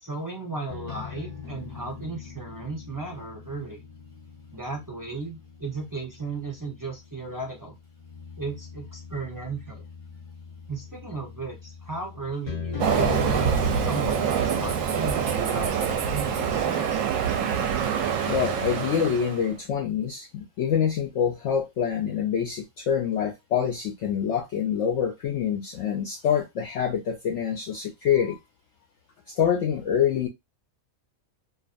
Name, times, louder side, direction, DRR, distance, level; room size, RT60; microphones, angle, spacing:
voice 1, 0.0-3.8 4.5-7.7 8.4-9.8 10.7-13.3 13.8-17.2, right 3 dB, 35° right, 0.3 m, -36 dB
sound 1, 0.7-16.7, left 6 dB, 35° left, 0.8 m, -39 dB
Train, 12.8-19.5, right 8 dB, 70° right, 0.9 m, -25 dB
voice 2, 18.3-28.4 29.4-30.3, left 8 dB, 65° left, 0.8 m, -26 dB
2.5 x 2.4 x 2.4 m
omnidirectional pair, 1.5 m